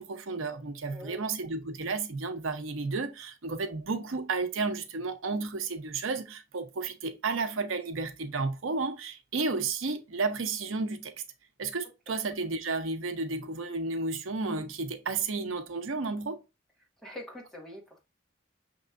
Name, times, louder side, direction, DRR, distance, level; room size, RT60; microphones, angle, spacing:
voice 1, 0.0-11.1 11.6-16.4, right 3 dB, 85° right, 0.8 m, -32 dB
voice 2, 0.9-1.3 12.1-12.2 17.0-18.0, left 1 dB, ahead, 1.6 m, -44 dB
6.4 x 3.1 x 2.5 m
head